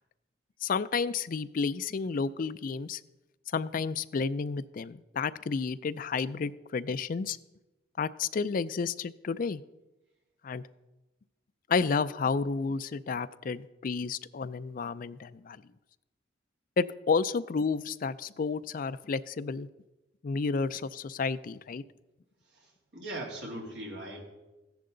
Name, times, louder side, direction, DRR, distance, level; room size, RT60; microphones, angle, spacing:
voice 1, 0.6-3.0 3.5-7.4 8.0-9.6 10.4-10.6 11.7-15.6 16.8-19.7 20.2-21.8, left 5 dB, 50° left, 14 dB, 0.4 m, -31 dB
voice 2, 22.6-24.2, right 1 dB, 70° right, -1 dB, 2.9 m, -40 dB
14.5 x 10.5 x 3.8 m, 1.0 s
head